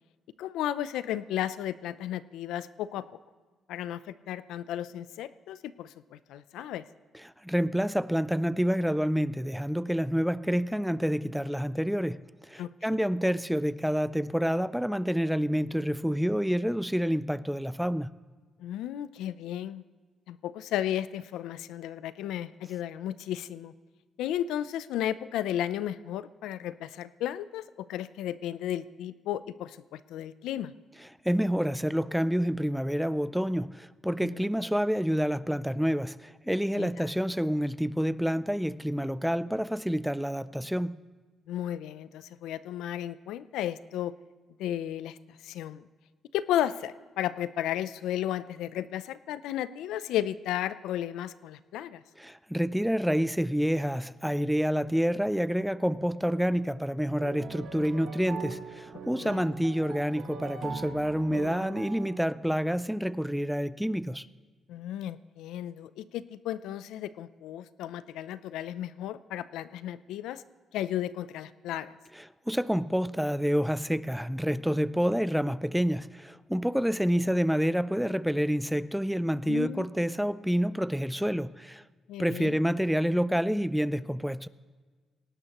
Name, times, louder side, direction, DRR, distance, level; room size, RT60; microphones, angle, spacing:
voice 1, 0.4-3.0 3.7-6.8 12.6-12.7 18.6-19.8 20.3-23.7 24.2-30.7 34.2-34.5 36.8-37.1 41.5-44.1 44.6-45.2 45.4-45.8 46.3-52.0 59.2-59.4 64.7-70.4 70.7-72.0 79.5-79.9 82.1-82.6, left 11 dB, 90° left, 0.5 m, -34 dB
voice 2, 7.4-18.1 31.2-41.0 52.2-64.3 72.2-81.8 82.2-84.5, equal, ahead, 0.4 m, -28 dB
sound 1, 57.2-62.2, right 5 dB, 60° right, 1.2 m, -41 dB
19.5 x 18.0 x 3.0 m
cardioid pair, 90°, 0 cm